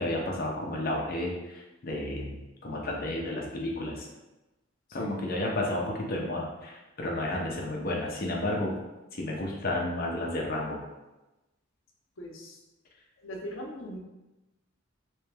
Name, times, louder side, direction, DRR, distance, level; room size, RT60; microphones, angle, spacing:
voice 1, 0.0-4.1 4.9-8.8 9.1-10.8, left 1 dB, 50° left, -1 dB, 0.7 m, -32 dB
voice 2, 4.9-5.2 12.2-12.6 13.2-14.0, equal, 80° left, -1 dB, 0.8 m, -40 dB
3.3 x 3.2 x 3.4 m, 1.0 s
head